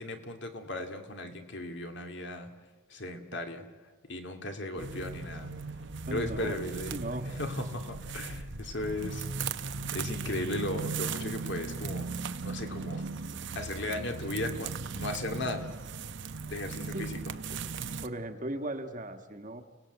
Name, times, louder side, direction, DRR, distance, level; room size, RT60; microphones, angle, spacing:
voice 1, 0.0-2.5 2.9-3.6 4.1-5.5 6.1-6.9 7.4-9.3 9.9-12.1 12.4-13.0 13.5-15.7 16.5-17.2, left 1 dB, 55° left, 5 dB, 2.4 m, -36 dB
sound 1, 4.8-18.1, right 4 dB, 60° right, 0.9 m, -37 dB
voice 2, 6.1-6.6 6.9-7.3 16.9-17.1 18.0-19.6, right 1 dB, 40° right, 6 dB, 1.5 m, -37 dB
30.0 x 18.5 x 8.0 m, 1.5 s
head